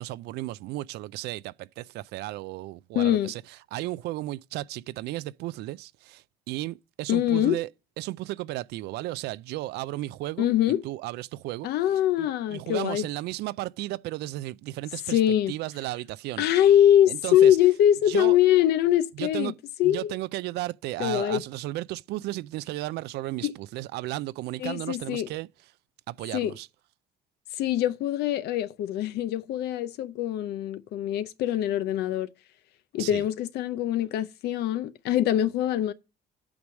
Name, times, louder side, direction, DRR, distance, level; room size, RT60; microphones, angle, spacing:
voice 1, 0.0-7.7 8.0-11.7 12.2-15.2 15.5-16.4 17.1-17.6 18.1-18.4 19.1-19.6 19.8-25.5 26.1-26.7 33.0-33.3, right 17 dB, 80° right, 0.4 m, -34 dB
voice 2, 2.9-3.3 7.1-7.6 10.4-10.8 11.6-13.1 15.1-15.5 16.4-19.5 19.8-20.1 21.0-21.4 23.4-23.5 24.6-25.3 26.3-26.5 27.6-32.3 32.9-35.9, left 11 dB, 75° left, 0.6 m, -23 dB
8.6 x 4.7 x 6.2 m
cardioid pair, 110°, 17 cm